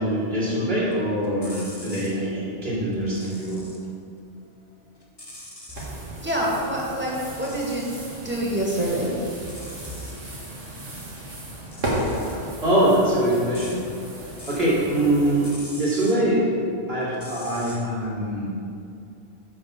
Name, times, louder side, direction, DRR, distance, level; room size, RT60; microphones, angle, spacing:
voice 1, 0.0-3.6 12.6-13.8 14.5-18.5, right 1 dB, 55° right, -7 dB, 2.9 m, -23 dB
sound 1, 0.9-2.2 2.9-3.9 4.3-6.0 7.2-8.2 8.6-10.2 11.5-14.7 15.0-16.2 17.1-17.8, left 1 dB, 20° left, 1.2 m, -44 dB
sound 2, 5.7-15.5, right 1 dB, 85° right, 2.2 m, -34 dB
voice 2, 6.2-7.9 8.2-9.2, right 1 dB, 10° right, -4 dB, 1.8 m, -26 dB
7.7 x 5.7 x 6.8 m, 2.5 s
omnidirectional pair, 1.2 m